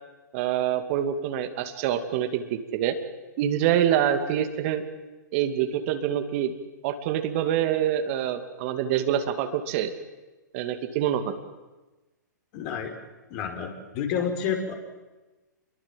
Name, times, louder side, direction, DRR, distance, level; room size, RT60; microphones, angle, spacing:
voice 1, 0.3-2.9 3.4-4.8 5.3-6.5 6.8-9.9 10.5-11.4, right 10 dB, 45° right, 7 dB, 2.5 m, -26 dB
voice 2, 12.5-12.9 13.3-14.7, left 7 dB, 40° left, 3 dB, 5.2 m, -29 dB
28.0 x 22.5 x 7.7 m, 1.2 s
figure-of-eight pair, 115°, 10 cm